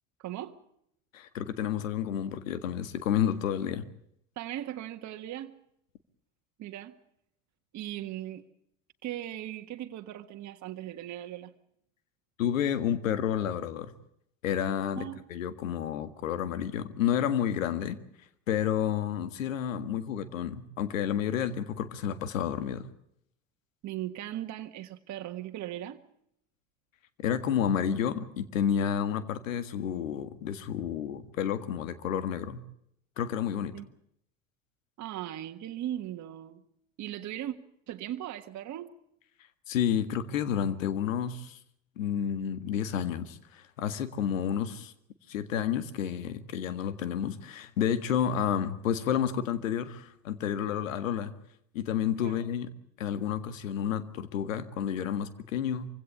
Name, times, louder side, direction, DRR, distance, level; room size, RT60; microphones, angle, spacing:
voice 1, 0.2-0.5 4.3-5.5 6.6-6.9 7.7-8.5 9.0-11.5 15.0-15.2 23.8-26.0 33.7-33.9 35.0-36.6 37.0-37.6 37.9-38.9 52.2-52.4, right 12 dB, 45° right, 1.7 m, -38 dB
voice 2, 1.1-3.8 12.4-13.9 14.4-18.0 18.5-22.8 27.2-32.6 33.2-33.7 39.7-41.6 42.0-44.9 45.3-51.3 51.7-52.7 53.0-55.9, left 9 dB, 80° left, 1.8 m, -30 dB
25.0 x 16.5 x 8.5 m
hypercardioid pair, 70°, 39 cm